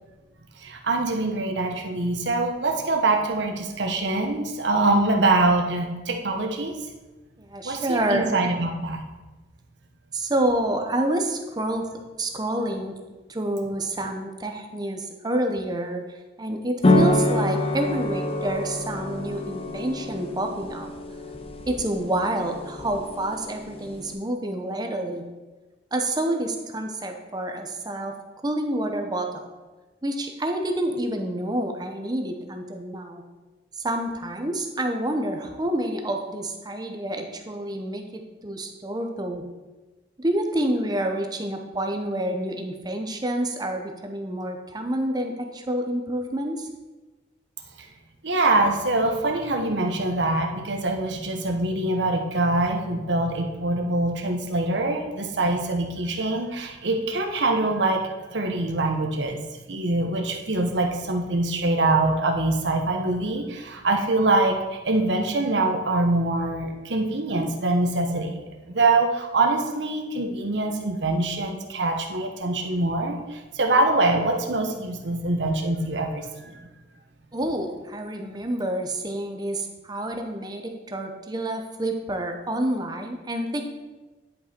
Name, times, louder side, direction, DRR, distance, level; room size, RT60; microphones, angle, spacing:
voice 1, 0.6-6.8 7.6-9.0 48.2-64.6 64.8-76.6, right 2 dB, 80° right, 3 dB, 1.1 m, -24 dB
voice 2, 7.4-8.4 10.1-11.9 12.2-13.0 13.3-16.0 16.4-20.9 21.7-25.2 25.9-28.1 28.4-29.5 30.0-33.2 33.8-39.4 40.2-46.7 77.3-83.6, right 1 dB, 25° right, 4 dB, 0.7 m, -28 dB
sound 1, 16.8-24.1, left 1 dB, 30° left, 0.7 m, -26 dB
10.5 x 5.5 x 4.3 m, 1.2 s
head